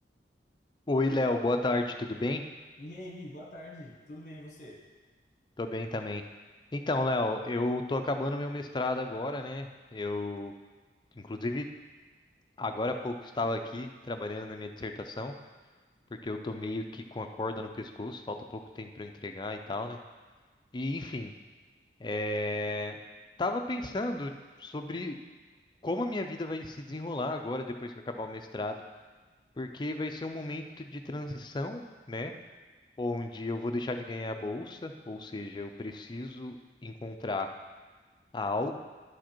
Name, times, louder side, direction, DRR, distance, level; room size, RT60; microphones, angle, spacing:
voice 1, 0.9-2.4 5.6-6.2 6.7-10.5 11.2-11.7 12.6-15.3 16.2-20.0 20.7-21.3 22.0-23.0 23.4-24.3 24.6-25.2 25.8-28.8 29.6-32.3 33.0-36.6 36.8-37.5 38.3-38.8, left 2 dB, 25° left, 6 dB, 0.4 m, -33 dB
voice 2, 2.8-4.8, left 1 dB, 45° left, 0 dB, 1.4 m, -44 dB
11.0 x 5.0 x 4.5 m, 1.4 s
head